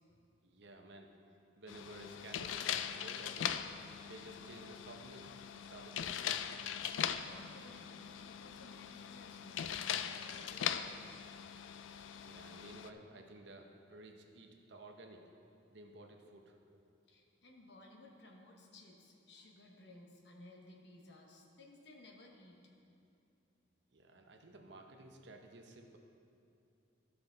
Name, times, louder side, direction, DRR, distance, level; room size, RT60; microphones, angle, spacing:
voice 1, 0.4-1.1 1.6-3.6 4.0-6.2 11.9-15.3 15.7-16.6 23.9-26.0, right 2 dB, 65° right, 3 dB, 0.8 m, -54 dB
sound 1, 1.7-12.9, left 9 dB, 80° left, 0.3 m, -41 dB
voice 2, 6.9-10.9 17.1-22.6, left 2 dB, 60° left, 1 dB, 1.0 m, -58 dB
13.0 x 5.7 x 3.9 m, 2.6 s
head